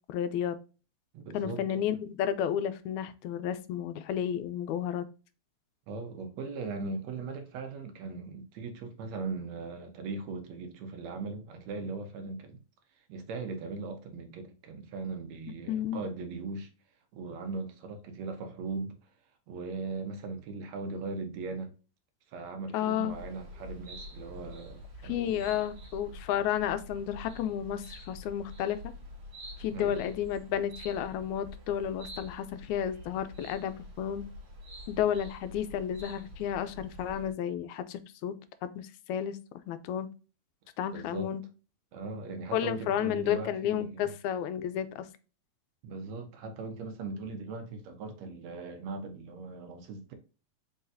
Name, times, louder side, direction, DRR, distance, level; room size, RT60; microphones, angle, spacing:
voice 1, 0.1-0.6 1.3-5.1 15.7-16.1 22.7-23.2 25.0-28.8 29.6-34.3 34.9-38.4 38.6-39.4 39.7-40.1 40.8-41.4 42.5-45.1, left 10 dB, 85° left, 2.0 m, -32 dB
voice 2, 1.1-1.8 5.9-12.6 13.1-16.7 17.1-19.0 19.5-21.7 22.3-25.6 29.7-30.0 40.9-41.3 41.9-44.1 45.8-50.1, right 3 dB, 70° right, 2.0 m, -39 dB
sound 1, 23.1-37.3, left 1 dB, 45° right, 2.2 m, -47 dB
5.2 x 3.9 x 2.6 m
omnidirectional pair, 3.3 m